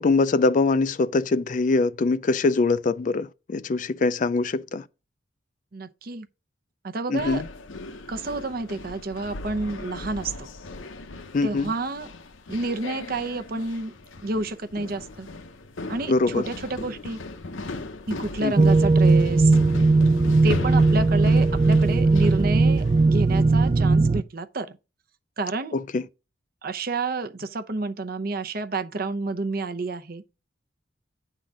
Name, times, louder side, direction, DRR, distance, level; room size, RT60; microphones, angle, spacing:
voice 1, 0.0-4.8 7.1-7.4 11.3-11.7 16.1-16.4 18.4-18.7 25.7-26.0, left 3 dB, 40° left, 0.4 m, -23 dB
voice 2, 5.7-6.3 6.8-7.4 8.1-10.5 11.4-12.1 12.5-13.9 14.2-15.3 15.9-17.2 18.1-19.6 20.4-24.7 25.4-25.7 26.6-30.2, right 2 dB, 50° right, 0.7 m, -29 dB
A group of friends going down the stairs, 7.2-23.7, left 3 dB, 85° left, 0.8 m, -37 dB
sound 1, 18.6-24.2, right 3 dB, 30° right, 0.3 m, -18 dB
9.6 x 3.8 x 6.1 m
head